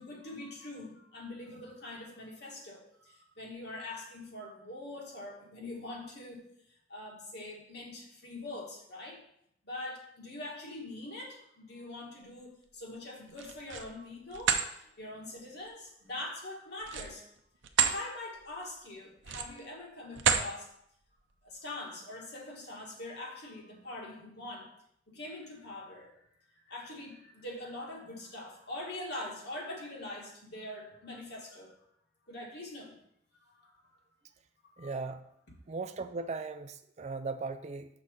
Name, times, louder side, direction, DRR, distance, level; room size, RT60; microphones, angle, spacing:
voice 1, 0.0-6.5 6.9-9.2 9.6-17.3 17.8-20.7 21.4-24.7 25.1-26.1 26.7-31.7 32.3-33.0 33.6-33.7 34.8-34.9, left 2 dB, 60° left, -1 dB, 1.8 m, -43 dB
sound 1, 13.3-13.9 14.3-14.7 16.8-18.0 18.4-18.6 19.2-19.7 20.1-20.5, right 7 dB, 80° right, 0.6 m, -29 dB
voice 2, 34.8-35.2 35.7-37.9, right 4 dB, 35° right, 9 dB, 0.4 m, -38 dB
5.9 x 4.2 x 6.3 m, 0.73 s
head